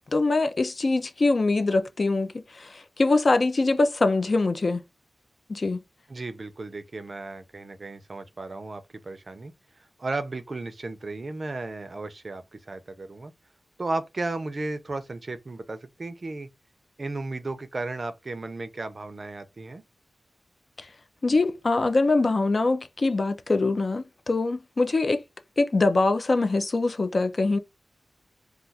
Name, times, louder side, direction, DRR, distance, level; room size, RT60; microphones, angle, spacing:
voice 1, 0.1-4.8 5.5-5.8 20.8-20.9 21.2-25.2 25.6-27.6, left 3 dB, 45° left, 0.4 m, -23 dB
voice 2, 6.1-13.3 13.8-16.5 17.0-19.8, right 2 dB, 40° right, 0.5 m, -34 dB
2.4 x 2.4 x 3.9 m
wide cardioid pair, 130°, 0 cm